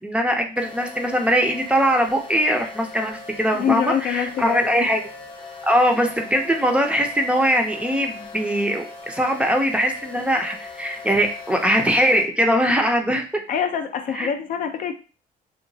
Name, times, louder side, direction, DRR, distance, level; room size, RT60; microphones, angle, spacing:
voice 1, 0.0-5.0 5.6-13.3 14.1-14.3, equal, 5° right, 2 dB, 0.5 m, -21 dB
sound 1, 0.6-12.2, left 4 dB, 35° left, 0.9 m, -39 dB
voice 2, 3.6-4.9 13.5-14.9, left 8 dB, 55° left, 6 dB, 0.4 m, -25 dB
2.9 x 2.2 x 2.6 m, 0.36 s
cardioid pair, 110°, 17 cm